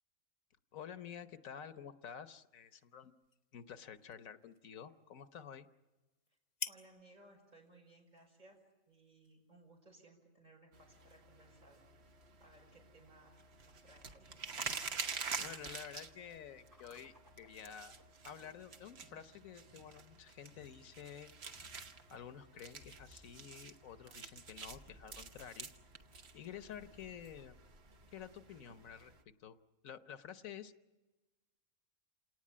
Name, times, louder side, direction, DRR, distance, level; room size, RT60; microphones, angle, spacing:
voice 1, 0.7-3.1 3.5-5.7 15.4-17.9 18.2-21.3 22.1-25.7 26.3-27.5 28.1-29.6 29.8-30.7, left 8 dB, 85° left, 11 dB, 1.4 m, -50 dB
sound 1, 2.3-10.0, left 5 dB, 35° left, 1.0 m, -53 dB
voice 2, 6.6-8.6 8.9-11.8 12.4-13.4 13.6-14.3, right 2 dB, 30° right, 1 dB, 5.9 m, -62 dB
sound 2, 10.7-29.2, right 5 dB, 55° right, 1.4 m, -48 dB
sound 3, 16.7-29.3, equal, 15° right, 2.5 m, -65 dB
28.0 x 18.5 x 8.6 m, 1.2 s
omnidirectional pair, 1.4 m